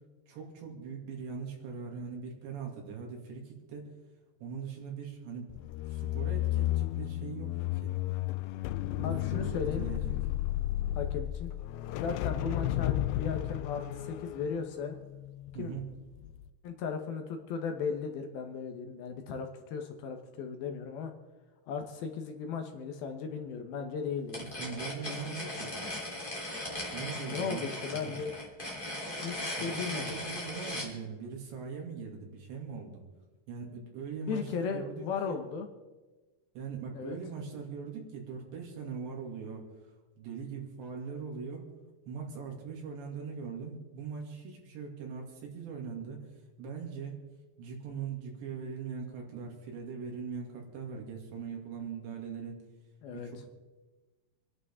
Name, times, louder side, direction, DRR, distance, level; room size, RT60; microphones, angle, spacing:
voice 1, 0.3-3.9 4.4-5.5 5.9-7.9 9.0-10.2 15.5-15.8 24.3-25.7 26.9-27.6 27.9-28.1 29.6-33.0 33.5-35.4 36.5-39.6 40.2-41.7 42.1-46.2 46.6-47.2 47.6-52.6 53.1-53.4, right 5 dB, 80° right, 0 dB, 4.7 m, -41 dB
sound 1, 5.5-15.8 16.2-16.5, left 14 dB, 90° left, 2.2 m, -33 dB
voice 2, 9.0-9.8 11.0-11.5 12.0-15.0 15.6-15.7 16.6-21.1 21.7-24.5 27.2-28.3 29.2-30.2 34.2-35.7 36.9-37.2 53.0-53.3, left 6 dB, 70° left, 5 dB, 2.7 m, -36 dB
sound 2, 24.3-30.9, left 1 dB, 15° left, 2.8 m, -38 dB
27.0 x 11.0 x 3.6 m, 1.2 s
omnidirectional pair, 5.0 m